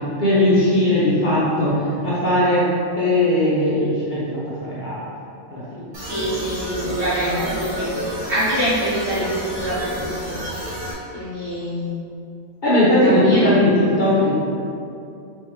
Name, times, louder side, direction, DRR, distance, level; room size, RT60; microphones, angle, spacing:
voice 1, 0.2-1.7 2.0-2.7 3.0-4.3 4.6-5.0 5.5-5.9 12.6-14.4, left 1 dB, 45° left, -9 dB, 0.8 m, -18 dB
sound 1, 5.9-10.9, equal, 30° right, 0.6 m, -30 dB
voice 2, 6.0-7.9 8.3-10.4 11.1-11.9 13.0-13.6, right 1 dB, 65° right, -12 dB, 1.9 m, -24 dB
3.5 x 3.3 x 3.1 m, 2.6 s
omnidirectional pair, 1.2 m